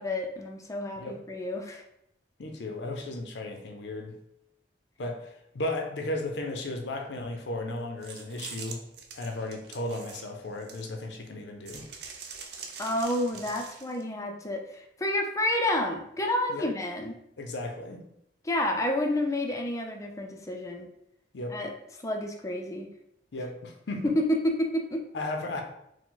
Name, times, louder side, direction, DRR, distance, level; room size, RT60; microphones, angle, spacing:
voice 1, 0.0-1.8 12.8-17.1 18.4-20.9 21.5-21.7 22.0-22.9 24.0-25.0, left 1 dB, 20° left, 2 dB, 0.5 m, -29 dB
voice 2, 2.4-4.2 5.0-8.8 9.1-11.8 16.5-16.7 17.4-18.1 21.3-21.6 23.3-24.1 25.1-25.6, left 2 dB, 75° left, 3 dB, 0.6 m, -35 dB
sound 1, 8.0-11.1 11.6-14.0, right 5 dB, 65° right, 0.6 m, -44 dB
4.7 x 2.2 x 3.8 m, 0.78 s
head